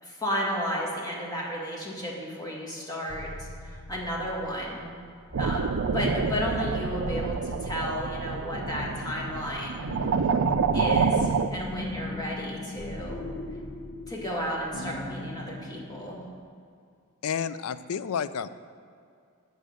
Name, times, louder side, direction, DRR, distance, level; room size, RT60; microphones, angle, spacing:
voice 1, 0.0-4.9 5.4-9.9 10.7-13.2 14.1-16.2, equal, 20° left, -3 dB, 1.8 m, -33 dB
sound 1, 3.1-16.4, left 2 dB, 40° left, 0.7 m, -40 dB
sound 2, 5.3-11.5, right 5 dB, 70° right, 0.4 m, -27 dB
voice 2, 17.2-18.5, left 7 dB, 80° left, 14 dB, 0.4 m, -30 dB
8.1 x 6.7 x 6.3 m, 2.3 s
head